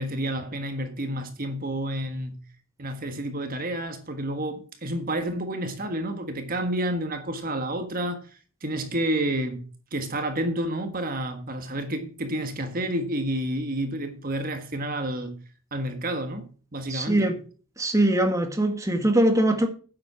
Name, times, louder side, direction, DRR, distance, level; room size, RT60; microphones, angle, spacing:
voice 1, 0.0-2.4 2.8-8.2 8.6-9.6 9.9-15.4 15.7-17.3, right 1 dB, 40° right, 1.6 m, -30 dB
voice 2, 16.9-17.3 17.8-19.7, right 1 dB, 15° right, 1.8 m, -22 dB
10.5 x 7.7 x 6.0 m
head